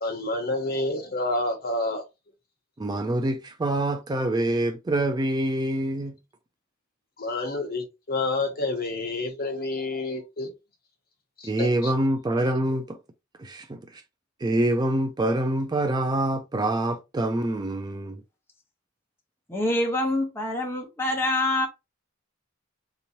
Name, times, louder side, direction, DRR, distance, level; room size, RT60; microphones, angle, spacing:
voice 1, 0.0-2.0 7.2-10.5 11.4-11.7, left 2 dB, 50° left, 1.1 m, -28 dB
voice 2, 2.8-6.2 11.4-13.0 13.4-14.0 14.4-18.2, right 1 dB, 20° right, 0.3 m, -26 dB
voice 3, 19.5-21.7, left 1 dB, 10° left, 1.0 m, -25 dB
3.6 x 3.0 x 2.8 m
head